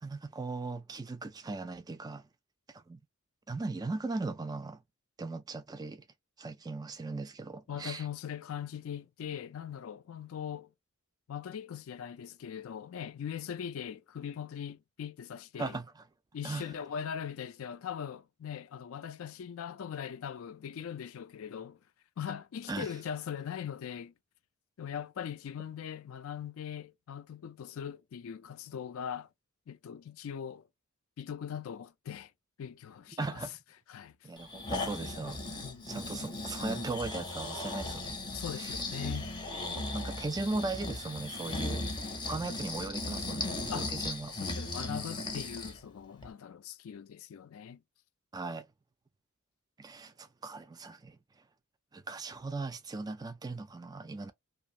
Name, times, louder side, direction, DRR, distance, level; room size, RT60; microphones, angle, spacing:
voice 1, 0.0-2.3 2.7-3.0 3.5-4.8 5.2-6.0 6.4-8.0 15.6-16.0 16.4-16.7 22.7-22.9 33.2-33.6 34.2-35.5 35.9-38.1 38.6-38.8 39.9-41.9 42.3-44.3 48.3-48.7 49.8-51.2 51.9-54.3, right 3 dB, 20° right, 0.3 m, -38 dB
voice 2, 7.7-10.7 11.3-15.8 16.3-21.8 22.2-24.1 24.8-29.3 29.7-30.7 31.2-32.3 32.6-33.4 33.9-34.2 35.6-35.9 38.3-39.3 43.7-44.1 44.3-47.8, left 8 dB, 65° left, 0.3 m, -40 dB
Breathing, 34.4-45.8 46.2-46.3, left 2 dB, 20° left, 0.6 m, -37 dB
2.6 x 2.4 x 2.7 m
head